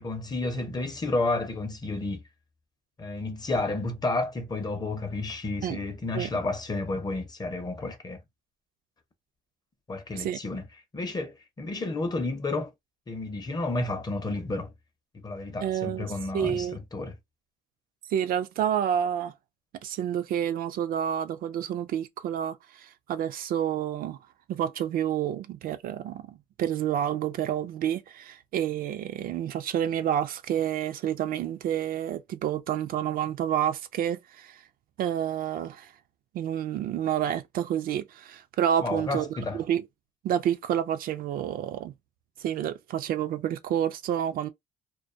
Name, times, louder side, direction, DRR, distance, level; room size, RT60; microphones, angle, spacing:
voice 1, 0.0-2.2 3.0-8.2 9.9-10.7 10.9-12.7 13.1-14.7 15.1-17.2 38.8-39.6, left 2 dB, 25° left, 0.6 m, -31 dB
voice 2, 15.6-16.1 16.3-16.8 18.1-19.3 19.8-24.2 24.5-34.6 35.0-35.9 36.3-39.8 40.2-41.9 42.4-44.5, right 10 dB, 60° right, 0.4 m, -29 dB
2.2 x 2.2 x 2.5 m
cardioid pair, 110°, 17 cm